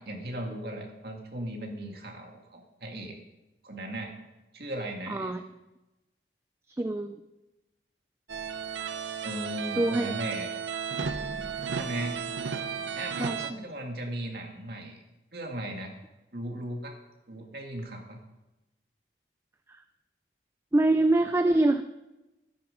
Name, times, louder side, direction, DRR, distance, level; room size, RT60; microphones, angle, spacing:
voice 1, 0.0-3.2 3.6-4.1 4.5-5.4 9.2-10.5 11.7-12.2 12.9-15.0 15.3-15.9 16.3-17.0 17.3-18.2, right 1 dB, 55° right, 1 dB, 2.2 m, -37 dB
voice 2, 5.1-5.4 6.7-7.1 9.8-10.2 11.7-11.9 13.2-13.6 19.7-19.8 20.7-21.8, right 2 dB, 15° right, 8 dB, 0.4 m, -25 dB
sound 1, 8.3-13.5, right 6 dB, 85° right, 0.7 m, -34 dB
13.0 x 9.7 x 5.2 m, 1.0 s
head